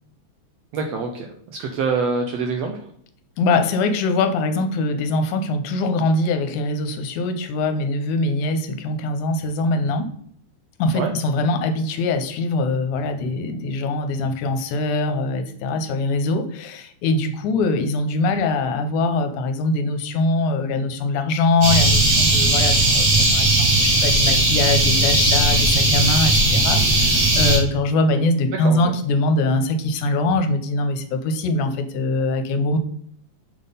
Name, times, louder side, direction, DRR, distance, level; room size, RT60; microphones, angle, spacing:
voice 1, 0.7-1.3 1.6-2.8 10.9-11.1 28.6-28.9, right 4 dB, 75° right, 4 dB, 1.5 m, -25 dB
voice 2, 3.4-10.1 10.8-32.8, left 2 dB, 80° left, 8 dB, 2.1 m, -22 dB
sound 1, 21.6-27.6, right 2 dB, 50° right, 2.5 m, -17 dB
6.2 x 3.7 x 5.2 m, 0.65 s
omnidirectional pair, 3.6 m